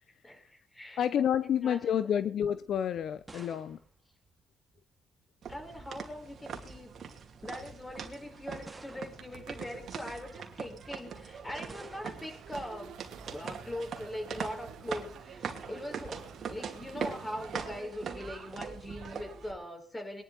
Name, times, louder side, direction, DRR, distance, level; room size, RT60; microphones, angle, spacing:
voice 1, 0.2-1.0 1.4-2.1 5.5-6.9 7.4-13.0 13.3-20.2, left 1 dB, 15° left, 4 dB, 4.9 m, -41 dB
voice 2, 1.0-3.8, left 9 dB, 65° left, 13 dB, 0.7 m, -29 dB
sound 1, 2.7-5.0 6.1-6.5 7.3-7.4 8.7-9.5 11.7-12.4, right 3 dB, 25° right, 2.1 m, -53 dB
sound 2, 5.4-19.5, right 6 dB, 55° right, 2.5 m, -42 dB
sound 3, 9.1-17.8, right 9 dB, 80° right, 1.8 m, -54 dB
22.0 x 11.0 x 4.1 m, 0.43 s
supercardioid pair, 70°, 0 cm